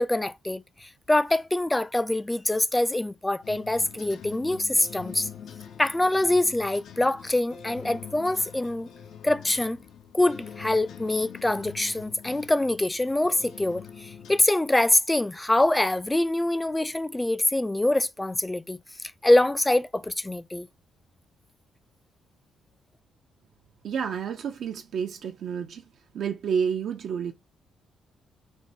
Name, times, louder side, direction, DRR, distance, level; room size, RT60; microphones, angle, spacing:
voice 1, 0.0-5.3 5.8-8.9 9.2-9.8 10.1-18.8 19.2-20.7, left 1 dB, 10° left, 0.3 m, -24 dB
sound 1, 3.4-14.4, left 8 dB, 70° left, 0.6 m, -44 dB
voice 2, 23.8-25.8 26.1-27.3, right 7 dB, 65° right, 0.6 m, -29 dB
4.4 x 2.2 x 2.7 m
cardioid pair, 90°, 0 cm